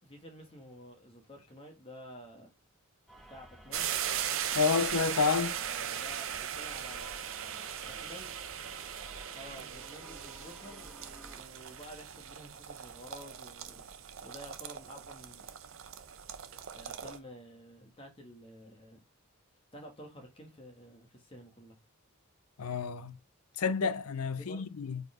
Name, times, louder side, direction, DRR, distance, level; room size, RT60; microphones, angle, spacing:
voice 1, 0.0-2.5 3.3-3.9 5.3-7.2 7.8-8.3 9.3-13.8 14.2-15.5 16.7-19.0 19.7-21.8 24.4-24.7, equal, 25° left, 1.3 m, -51 dB
sound 1, 3.1-11.4, equal, ahead, 1.2 m, -54 dB
sound 2, 3.7-17.2, right 9 dB, 60° right, 0.7 m, -39 dB
voice 2, 4.5-5.6 22.6-23.2 23.6-25.0, left 5 dB, 75° left, 0.6 m, -29 dB
4.8 x 4.1 x 4.8 m
head